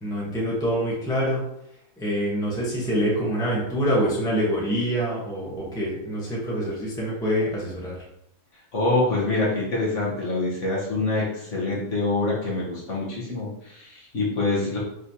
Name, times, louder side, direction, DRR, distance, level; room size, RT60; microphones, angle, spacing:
voice 1, 0.0-1.4 2.0-8.0, equal, 5° left, -5 dB, 0.9 m, -25 dB
voice 2, 8.7-14.8, left 2 dB, 50° left, -6 dB, 1.4 m, -25 dB
5.0 x 3.1 x 2.8 m, 0.79 s
omnidirectional pair, 1.7 m